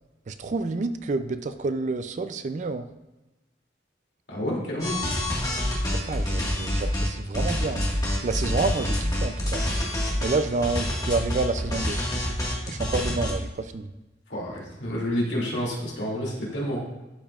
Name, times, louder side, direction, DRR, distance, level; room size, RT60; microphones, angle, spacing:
voice 1, 0.3-2.9 5.9-7.8 8.2-9.7 10.2-12.0 12.7-13.9, right 3 dB, 40° right, 11 dB, 0.4 m, -29 dB
voice 2, 4.3-5.0 14.3-16.8, equal, 70° left, -4 dB, 2.7 m, -29 dB
sound 1, 4.8-7.1 7.3-13.3, left 1 dB, 20° left, 1.7 m, -27 dB
12.0 x 5.3 x 2.4 m, 1.0 s
head